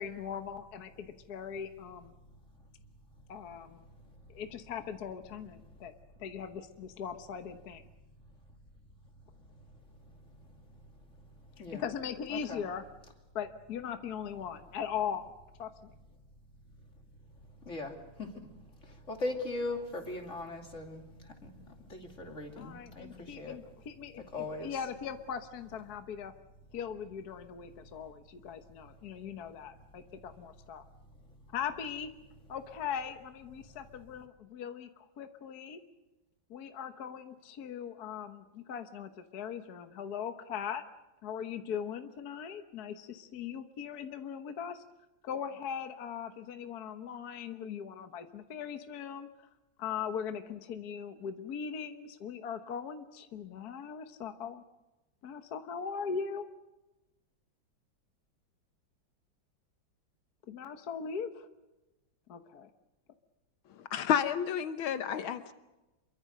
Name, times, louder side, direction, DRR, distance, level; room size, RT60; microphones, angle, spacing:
voice 1, 0.0-2.1 3.3-3.8 4.3-7.8 11.7-12.8 13.3-15.3 15.6-15.9 22.6-26.3 26.7-30.8 31.5-32.1 32.5-35.8 36.5-40.8 41.2-44.8 45.2-49.3 49.8-54.6 55.2-56.5 60.5-61.5 62.3-62.7, left 7 dB, 55° left, 8 dB, 1.5 m, -40 dB
voice 2, 12.3-12.6 17.6-18.3 18.8-23.6 24.3-24.7, left 2 dB, 35° left, 3 dB, 3.1 m, -39 dB
voice 3, 63.9-65.5, left 8 dB, 80° left, 10 dB, 1.8 m, -30 dB
27.5 x 23.0 x 6.6 m, 1.1 s
omnidirectional pair, 2.2 m